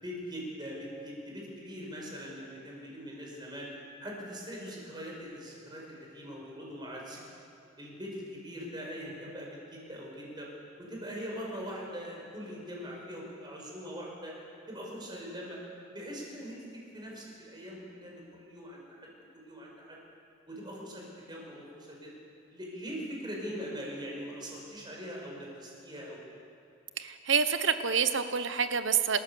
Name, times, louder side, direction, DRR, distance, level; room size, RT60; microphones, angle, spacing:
voice 1, 0.0-3.7 4.0-7.2 7.8-10.5 10.8-14.3 14.7-15.6 15.9-16.6 16.9-19.1 19.3-20.0 20.5-22.1 22.5-26.2, equal, 20° right, -3 dB, 5.3 m, -42 dB
voice 2, 27.0-29.2, right 6 dB, 60° right, 10 dB, 1.0 m, -27 dB
28.5 x 14.0 x 7.1 m, 2.6 s
head